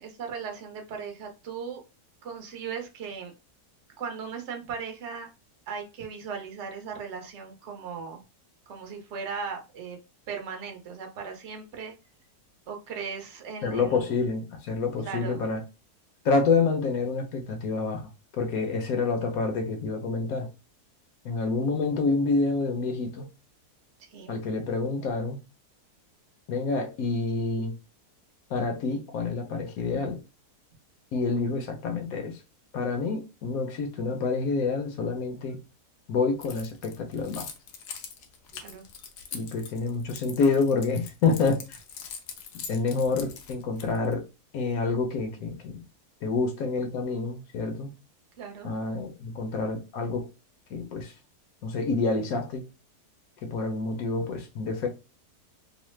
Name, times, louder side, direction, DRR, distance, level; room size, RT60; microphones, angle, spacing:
voice 1, 0.0-1.8 2.2-3.3 4.0-5.3 5.7-8.2 8.7-10.0 10.3-11.9 12.7-14.1 15.0-15.4 24.0-24.4 38.5-38.8 39.3-39.5 48.4-48.7, right 6 dB, 55° right, 0.9 m, -37 dB
voice 2, 13.6-15.6 16.2-20.5 21.2-23.3 24.3-25.4 26.5-27.7 28.5-30.2 31.1-32.4 32.7-35.6 36.1-37.5 39.3-41.8 42.5-44.2 44.5-45.8 46.2-47.9 48.6-50.3 50.7-51.1 51.6-52.6 53.4-54.9, left 4 dB, 70° left, 1.0 m, -28 dB
Keys jangling, 36.4-44.1, left 7 dB, 90° left, 1.2 m, -42 dB
3.1 x 2.1 x 3.1 m
omnidirectional pair, 1.7 m